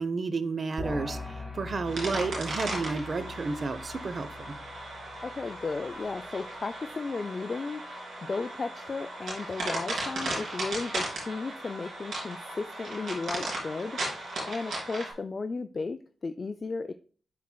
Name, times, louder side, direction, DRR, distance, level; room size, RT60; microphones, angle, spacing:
voice 1, 0.0-4.6, right 4 dB, 45° right, 11 dB, 0.7 m, -31 dB
sound 1, 0.8-6.3, left 2 dB, 10° right, 2.9 m, -42 dB
sound 2, 1.8-15.1, right 1 dB, 85° right, 3.1 m, -36 dB
voice 2, 5.2-16.9, left 4 dB, 40° left, 9 dB, 0.3 m, -35 dB
11.5 x 4.3 x 2.2 m, 0.41 s
cardioid pair, 90°, 0 cm